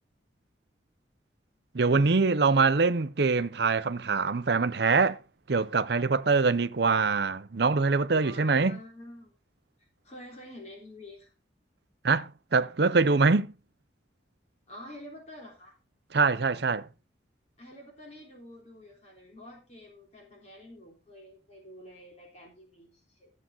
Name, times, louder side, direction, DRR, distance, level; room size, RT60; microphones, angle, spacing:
voice 1, 1.7-5.2 5.5-8.8 12.0-13.5 16.1-16.9, right 4 dB, 60° right, 0.7 m, -24 dB
voice 2, 8.1-9.3 10.0-11.3 14.7-15.7 17.6-23.3, left 1 dB, 35° left, 3.4 m, -48 dB
14.0 x 7.6 x 3.8 m
head